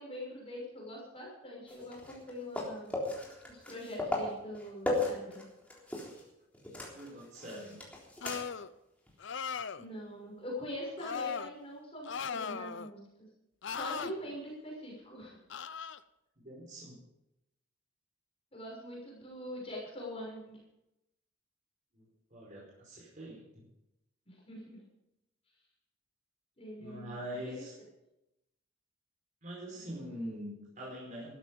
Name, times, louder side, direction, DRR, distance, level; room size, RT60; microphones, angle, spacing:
voice 1, 0.0-2.9 3.5-5.4 9.8-13.0 13.7-15.4 18.5-20.6 24.3-24.8 26.6-27.2 27.4-27.6, equal, 30° left, -3 dB, 6.2 m, -43 dB
sound 1, 1.7-6.3 6.5-8.7 9.1-9.2 11.7-11.8, left 2 dB, 5° left, 3.7 m, -37 dB
voice 2, 6.9-7.8 16.4-17.0 21.9-22.0 22.3-23.6 26.8-27.7 29.4-31.3, equal, 40° right, -5 dB, 4.9 m, -43 dB
sound 2, 8.2-8.7 9.2-9.8 11.0-11.5 12.0-12.9 13.6-14.1 15.5-16.0, left 6 dB, 60° left, 0.7 m, -38 dB
15.0 x 13.5 x 5.3 m, 0.87 s
head